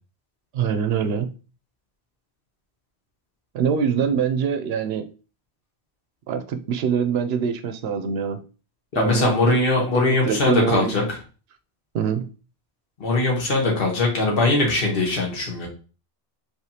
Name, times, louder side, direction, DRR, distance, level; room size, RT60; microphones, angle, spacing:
voice 1, 0.5-1.4 3.5-5.1 6.3-8.4 9.0-9.6 9.9-10.9 11.9-12.3, right 7 dB, 75° right, 9 dB, 0.8 m, -24 dB
voice 2, 8.9-11.0 13.0-15.7, left 2 dB, 60° left, -1 dB, 1.4 m, -21 dB
4.9 x 3.4 x 2.8 m, 0.35 s
omnidirectional pair, 1.1 m